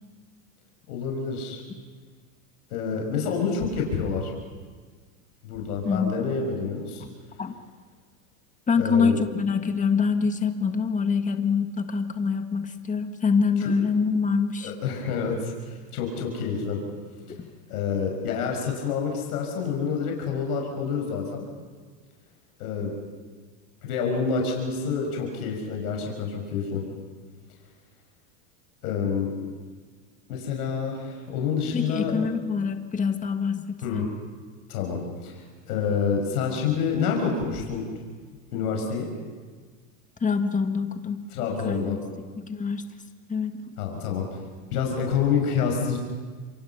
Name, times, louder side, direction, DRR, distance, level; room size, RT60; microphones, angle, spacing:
voice 1, 0.9-1.6 2.7-4.3 5.4-7.0 8.8-9.2 13.6-13.7 14.6-16.8 17.7-21.5 22.6-22.9 23.8-26.8 28.8-29.4 30.3-32.1 33.8-34.1 34.7-37.8 38.5-39.1 41.3-42.0 43.8-44.4 44.7-46.0, left 6 dB, 85° left, 1 dB, 5.9 m, -28 dB
voice 2, 5.8-6.3 7.4-7.6 8.7-14.7 31.7-34.1 40.2-41.2 41.6-42.0 42.5-42.8 43.3-43.6, left 5 dB, 15° left, 7 dB, 1.7 m, -25 dB
28.0 x 24.0 x 5.7 m, 1.5 s
supercardioid pair, 120°, 44 cm